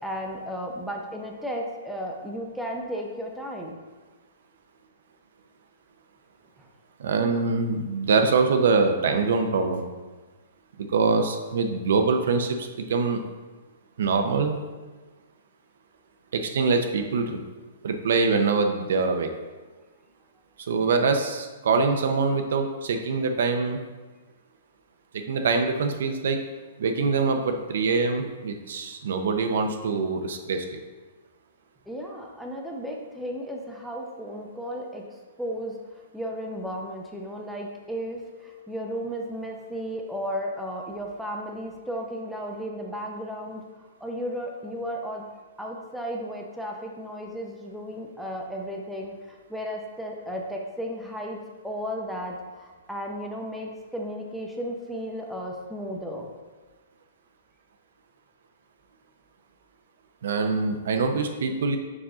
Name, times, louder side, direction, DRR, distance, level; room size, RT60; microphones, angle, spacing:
voice 1, 0.0-3.8 6.6-6.7 31.9-35.1 35.4-45.2 45.6-56.3, equal, ahead, -1 dB, 0.6 m, -34 dB
voice 2, 7.0-9.8 10.8-13.2 14.0-14.6 16.3-17.4 17.8-19.3 20.6-23.8 25.1-26.4 26.8-30.8 60.2-61.8, right 4 dB, 75° right, 5 dB, 0.6 m, -24 dB
5.3 x 4.9 x 3.7 m, 1.3 s
hypercardioid pair, 155°, 0 cm